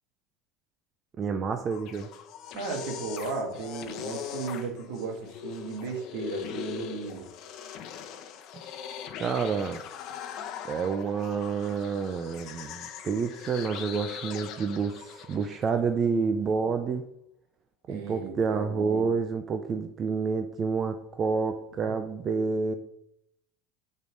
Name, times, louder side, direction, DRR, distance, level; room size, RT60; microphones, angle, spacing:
voice 1, 1.2-2.1 9.2-9.8 10.6-17.0 17.9-22.7, right 5 dB, 35° right, 7 dB, 0.6 m, -29 dB
sound 1, 1.6-15.7, left 8 dB, 60° left, 0.9 m, -41 dB
voice 2, 2.5-7.3 17.9-19.1, right 4 dB, 80° right, 2 dB, 1.8 m, -35 dB
6.8 x 4.4 x 5.1 m, 0.76 s
supercardioid pair, 100°, 0 cm